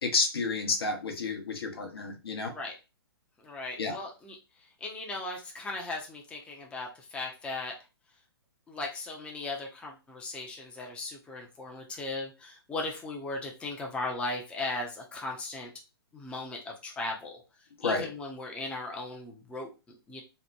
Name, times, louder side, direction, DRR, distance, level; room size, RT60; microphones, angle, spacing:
voice 1, 0.0-2.5 3.8-4.0 17.8-18.1, left 4 dB, 70° left, 3 dB, 0.7 m, -30 dB
voice 2, 3.4-7.7 8.7-15.7 16.1-20.2, left 2 dB, 10° left, 0 dB, 0.4 m, -38 dB
2.9 x 2.0 x 2.3 m, 0.29 s
figure-of-eight pair, 120°, 13 cm